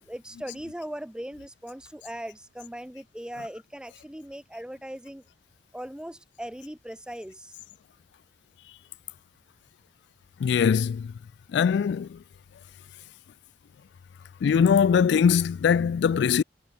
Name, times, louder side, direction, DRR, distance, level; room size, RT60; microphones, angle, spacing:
voice 1, 0.0-5.2 5.7-7.5, equal, 5° right, 0.9 m, -39 dB
voice 2, 10.4-11.1 11.5-12.2 14.4-16.4, left 7 dB, 70° left, 0.3 m, -21 dB
head